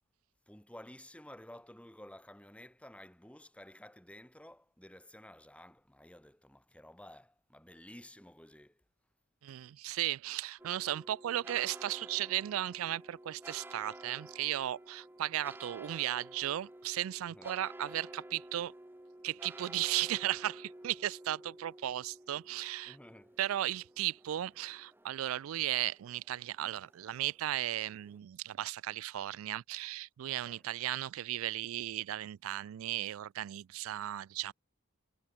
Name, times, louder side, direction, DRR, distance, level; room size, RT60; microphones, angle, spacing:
voice 1, 0.5-8.8 17.3-17.5 22.8-23.4 30.4-30.7, left 1 dB, 5° left, 5.5 m, -53 dB
voice 2, 9.4-18.7 19.2-23.0 23.4-34.5, right 13 dB, 75° right, 0.3 m, -36 dB
sound 1, 10.6-28.2, right 1 dB, 10° right, 0.9 m, -52 dB
head